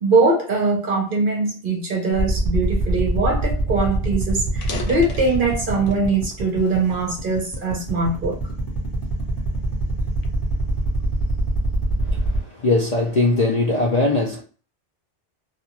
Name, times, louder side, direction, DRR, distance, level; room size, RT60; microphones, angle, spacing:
voice 1, 0.0-8.4, right 3 dB, 50° right, 0.8 m, -21 dB
sound 1, 2.2-12.4, right 7 dB, 25° left, 1.1 m, -27 dB
sound 2, 3.4-3.5 3.8-4.0 4.5-6.1 6.6-7.9 8.5-8.7 9.4-11.4, left 4 dB, 85° left, 1.0 m, -38 dB
voice 2, 12.0-14.4, left 2 dB, 50° left, 0.5 m, -21 dB
2.5 x 2.3 x 2.9 m
omnidirectional pair, 1.2 m